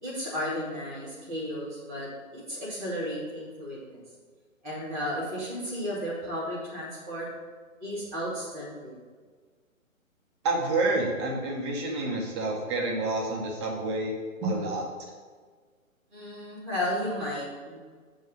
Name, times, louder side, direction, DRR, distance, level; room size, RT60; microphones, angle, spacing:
voice 1, 0.0-2.1 2.3-4.0 4.6-7.3 7.8-8.9 14.4-14.5 16.1-17.8, equal, ahead, -21 dB, 0.5 m, -33 dB
voice 2, 10.4-14.1 14.4-14.8, right 2 dB, 20° right, 0 dB, 0.9 m, -28 dB
7.2 x 3.9 x 6.3 m, 1.5 s
figure-of-eight pair, 135°, 41 cm